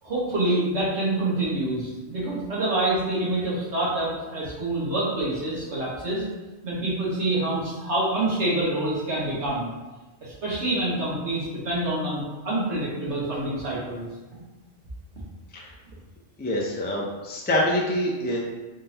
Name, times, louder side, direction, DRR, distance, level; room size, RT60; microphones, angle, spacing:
voice 1, 0.0-6.2 6.6-9.7 10.2-14.1 14.3-14.4, right 2 dB, 65° right, -7 dB, 1.6 m, -26 dB
voice 2, 16.4-18.4, left 1 dB, 15° left, -3 dB, 0.3 m, -26 dB
3.8 x 3.7 x 2.8 m, 1.2 s
omnidirectional pair, 1.2 m